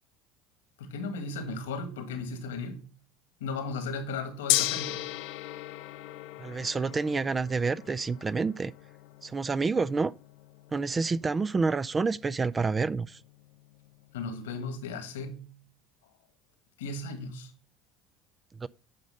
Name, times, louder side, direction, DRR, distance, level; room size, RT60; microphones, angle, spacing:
voice 1, 0.8-2.9 3.4-5.1 14.1-15.6 16.8-17.5, left 3 dB, 90° left, 1.6 m, -36 dB
Gong, 4.5-14.7, left 16 dB, 75° left, 0.7 m, -37 dB
voice 2, 6.4-8.7 9.2-10.1 10.7-13.2 18.6-18.7, right 4 dB, 25° right, 0.4 m, -28 dB
9.3 x 5.2 x 5.4 m
hypercardioid pair, 85°, 0 cm